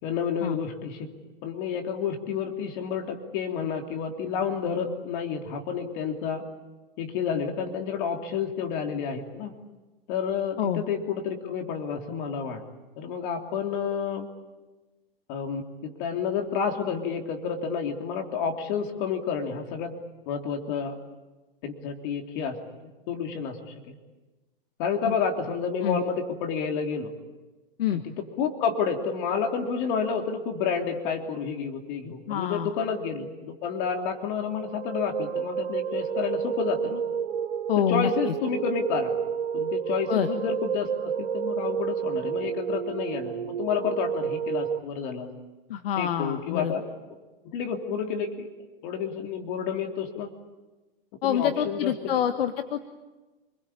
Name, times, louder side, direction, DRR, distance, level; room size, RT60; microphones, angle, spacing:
voice 1, 0.0-1.1 1.4-6.4 7.0-9.5 10.1-12.6 13.0-14.3 15.3-19.9 20.3-21.0 21.6-22.6 23.1-24.0 24.8-27.1 27.9-28.0 28.4-37.0 37.8-39.1 39.5-45.3 46.0-46.9 47.4-48.5 48.8-50.3 51.2-51.9, left 6 dB, 55° left, 4 dB, 3.3 m, -30 dB
voice 2, 32.3-32.7 37.7-38.1 40.1-40.3 45.7-46.7 51.2-52.9, left 10 dB, 70° left, 8 dB, 1.6 m, -26 dB
sound 1, 34.5-44.8, right 7 dB, 90° right, 0.9 m, -30 dB
28.5 x 22.0 x 8.6 m, 1.2 s
hypercardioid pair, 110°, 30 cm